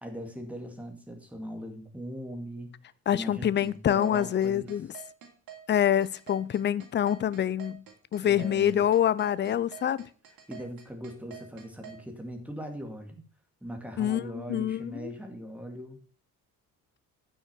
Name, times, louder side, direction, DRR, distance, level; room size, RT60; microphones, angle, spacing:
voice 1, 0.0-2.7 3.1-4.7 8.2-8.8 10.5-13.2 13.6-16.0, equal, 5° right, 2.2 m, -40 dB
voice 2, 3.1-4.9 5.7-7.8 8.1-10.0 14.0-15.2, left 10 dB, 30° left, 0.4 m, -26 dB
sound 1, 3.6-12.0, right 9 dB, 75° right, 2.9 m, -47 dB
9.3 x 6.4 x 5.9 m
cardioid pair, 130°, 35 cm